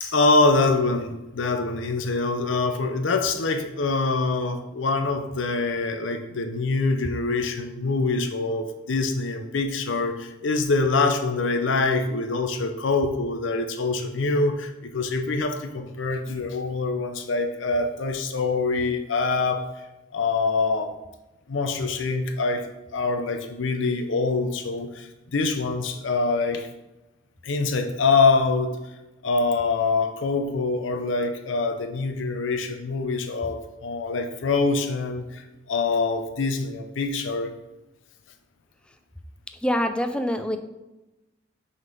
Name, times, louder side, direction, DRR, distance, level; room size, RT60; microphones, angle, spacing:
voice 1, 0.0-19.6 20.1-20.9 21.5-22.7 22.9-26.7 27.4-28.8 29.2-35.4 35.7-37.5, left 3 dB, 85° left, 6 dB, 0.7 m, -24 dB
voice 2, 39.6-40.6, equal, 5° left, 7 dB, 0.4 m, -24 dB
6.2 x 3.8 x 5.3 m, 1.0 s
head